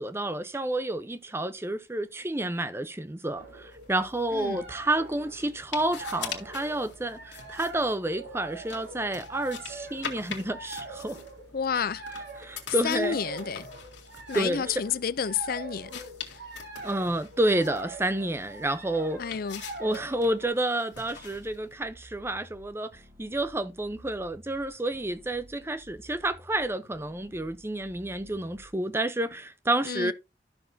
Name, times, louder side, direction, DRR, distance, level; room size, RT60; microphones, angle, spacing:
voice 1, 0.0-11.2 12.4-13.2 14.3-14.6 16.8-19.2 19.8-22.9 23.2-30.1, right 1 dB, 15° right, 0.6 m, -30 dB
sound 1, 3.3-20.5, right 2 dB, 70° right, 3.8 m, -43 dB
sound 2, 3.7-21.7, left 7 dB, 75° left, 1.9 m, -45 dB
voice 2, 11.5-12.0 12.8-13.7 14.3-16.5 19.2-19.6 29.8-30.1, left 7 dB, 50° left, 0.4 m, -30 dB
sound 3, 20.9-28.9, equal, 35° right, 1.9 m, -54 dB
12.0 x 6.4 x 2.7 m
head